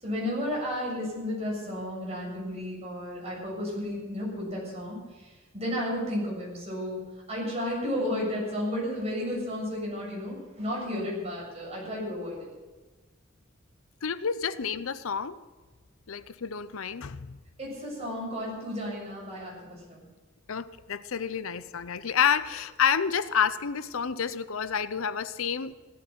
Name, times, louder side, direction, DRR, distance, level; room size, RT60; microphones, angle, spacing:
voice 1, 0.0-5.0 5.5-7.0 7.3-12.5 17.6-20.1, left 1 dB, 30° right, -3 dB, 7.3 m, -33 dB
voice 2, 14.0-15.4 16.1-17.4 20.5-25.7, left 7 dB, 80° left, 14 dB, 0.6 m, -29 dB
16.5 x 13.5 x 5.9 m, 1.2 s
head